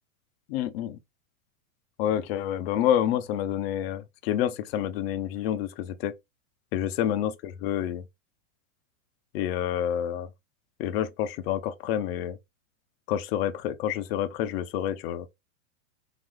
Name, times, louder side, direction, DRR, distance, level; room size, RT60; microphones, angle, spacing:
voice 1, 0.5-1.0 2.0-6.1 6.7-8.0 9.3-10.3 10.8-12.4 13.1-15.3, left 10 dB, 45° left, 0.6 m, -28 dB
4.0 x 3.0 x 3.1 m
supercardioid pair, 140°, 44 cm